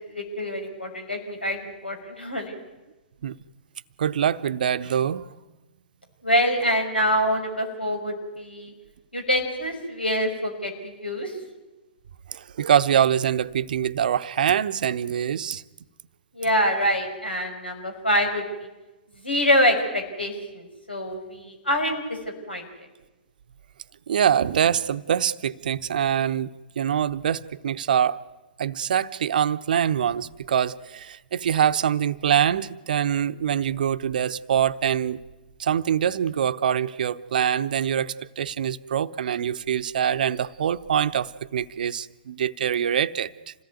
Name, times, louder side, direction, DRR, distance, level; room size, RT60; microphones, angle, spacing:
voice 1, 0.1-2.5 6.2-8.7 9.1-11.3 16.3-18.4 19.2-22.2 22.5-22.9, equal, 85° left, 6.1 m, -25 dB
voice 2, 4.0-5.3 12.3-15.6 24.1-28.2 28.6-35.2 35.6-43.5, right 9 dB, 55° right, 0.9 m, -24 dB
27.0 x 18.0 x 9.4 m
figure-of-eight pair, 115°, 5 cm